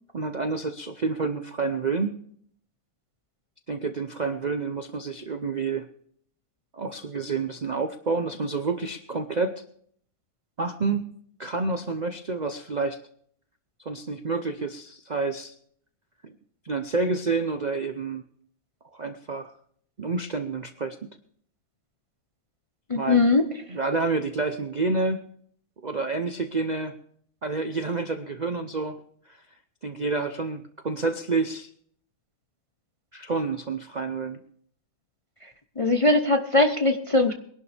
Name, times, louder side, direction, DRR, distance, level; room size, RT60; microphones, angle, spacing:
voice 1, 0.1-2.1 3.7-5.9 6.7-9.6 10.6-11.1 11.4-13.0 13.8-15.5 16.2-16.3 16.6-18.2 18.9-19.5 20.0-21.0 22.9-23.3 23.7-25.2 25.8-26.9 27.4-29.0 29.3-29.4 29.8-31.7 33.1-34.4, right 4 dB, 45° right, 7 dB, 0.5 m, -28 dB
voice 2, 22.9-23.5 35.8-37.3, left 2 dB, 30° left, 6 dB, 0.6 m, -20 dB
22.0 x 11.5 x 3.4 m, 0.63 s
omnidirectional pair, 1.7 m